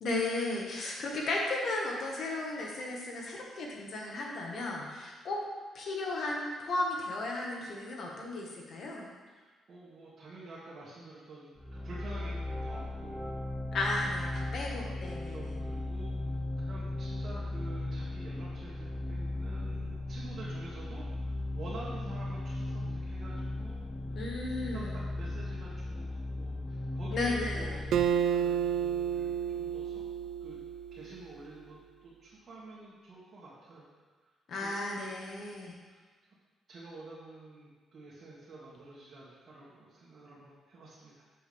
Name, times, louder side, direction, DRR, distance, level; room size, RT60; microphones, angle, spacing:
voice 1, 0.0-5.4 5.7-9.1 13.7-15.6 24.2-25.0 27.1-27.8 34.5-35.8, left 2 dB, 60° left, -1 dB, 1.8 m, -35 dB
voice 2, 9.4-13.1 15.3-16.1 16.6-23.8 24.1-24.2 24.6-30.0 30.4-30.6 30.9-33.9 34.6-35.2 35.9-36.0 36.7-41.2, right 2 dB, 45° right, -9 dB, 2.2 m, -48 dB
sound 1, 11.6-28.0, left 2 dB, 5° left, 0.8 m, -37 dB
Acoustic guitar, 27.9-31.3, right 8 dB, 70° right, 0.4 m, -31 dB
7.8 x 7.5 x 3.6 m, 1.4 s
cardioid pair, 90°, 0 cm